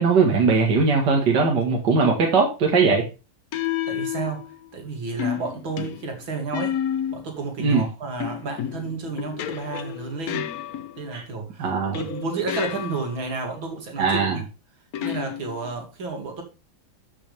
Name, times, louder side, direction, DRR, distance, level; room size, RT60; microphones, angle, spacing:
voice 1, 0.0-3.0 7.6-7.8 11.1-11.2 11.6-12.0 14.0-14.4, right 4 dB, 60° right, 2.4 m, -20 dB
sound 1, 1.4-1.8 3.5-4.8 5.2-7.4 8.2-11.2 11.9-13.2 14.9-15.8, left 10 dB, 60° left, 1.0 m, -31 dB
voice 2, 3.9-4.4 4.7-6.8 7.1-10.5 11.0-14.4 15.0-16.4, right 4 dB, 75° right, 3.4 m, -31 dB
13.5 x 6.1 x 3.5 m
omnidirectional pair, 2.2 m